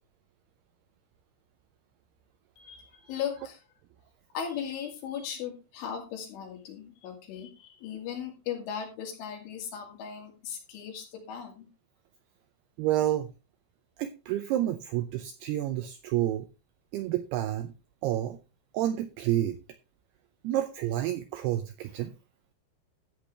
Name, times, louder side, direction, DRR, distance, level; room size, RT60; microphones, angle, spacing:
voice 1, 2.6-3.6 4.3-11.7, left 8 dB, 85° left, 2 dB, 4.9 m, -37 dB
voice 2, 12.8-13.3 14.0-16.5 16.9-17.7 18.0-18.4 18.7-19.6 20.4-22.1, right 13 dB, 85° right, 9 dB, 2.3 m, -29 dB
13.0 x 8.6 x 3.3 m, 0.29 s
omnidirectional pair, 5.4 m